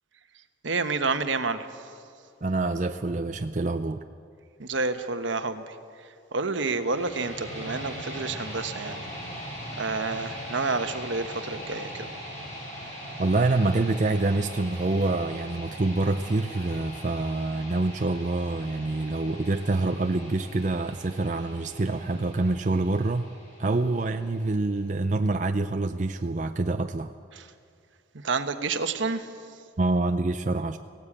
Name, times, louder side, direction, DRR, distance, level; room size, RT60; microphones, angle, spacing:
voice 1, 0.6-1.7 4.6-5.8 6.3-9.0 9.8-12.1 27.3-27.5 28.2-29.3, right 3 dB, 75° right, 9 dB, 1.1 m, -29 dB
voice 2, 2.4-4.1 13.2-23.3 23.6-27.1 29.8-30.8, right 2 dB, 40° right, 7 dB, 0.5 m, -26 dB
sound 1, 6.7-24.7, equal, 40° left, 6.6 m, -41 dB
18.0 x 17.5 x 8.6 m, 2.3 s
head